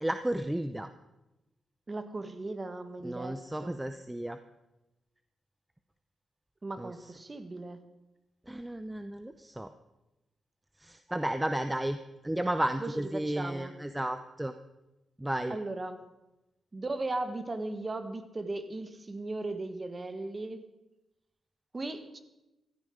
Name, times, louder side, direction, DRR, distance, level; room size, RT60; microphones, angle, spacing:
voice 1, 0.0-0.9 3.0-4.4 6.8-7.1 8.5-9.7 10.8-12.0 12.2-14.5 15.2-15.6, right 1 dB, 10° right, 9 dB, 0.6 m, -33 dB
voice 2, 1.9-3.8 6.6-7.8 12.8-13.7 15.5-16.0 16.7-20.6 21.7-22.2, right 2 dB, 25° right, 9 dB, 1.4 m, -37 dB
15.5 x 13.5 x 5.0 m, 0.98 s
cardioid pair, 115°, 0 cm